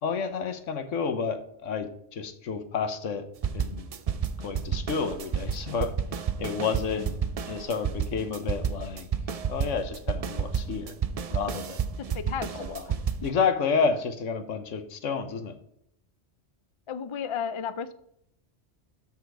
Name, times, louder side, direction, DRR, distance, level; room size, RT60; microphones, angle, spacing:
voice 1, 0.0-3.3 3.5-3.9 4.4-6.0 6.4-7.1 7.5-9.1 9.5-10.9 11.3-11.8 12.5-12.8 13.2-15.6, left 5 dB, 85° left, 8 dB, 1.3 m, -30 dB
sound 1, 3.4-13.3, right 7 dB, 55° right, 0.4 m, -31 dB
voice 2, 12.1-12.6 16.9-17.9, left 7 dB, 45° left, 13 dB, 0.4 m, -33 dB
12.5 x 4.5 x 4.7 m, 0.73 s
omnidirectional pair, 1.2 m